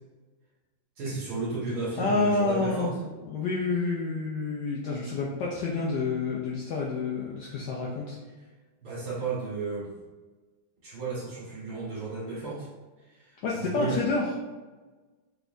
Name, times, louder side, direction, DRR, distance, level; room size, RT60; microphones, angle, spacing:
voice 1, 1.0-3.0 8.8-10.0 10.8-12.7 13.0-14.1, right 3 dB, 55° right, -8 dB, 2.1 m, -33 dB
voice 2, 2.0-3.0 3.3-8.2 13.4-14.4, left 3 dB, 70° left, -3 dB, 1.1 m, -28 dB
4.9 x 3.3 x 2.6 m, 1.3 s
omnidirectional pair, 2.2 m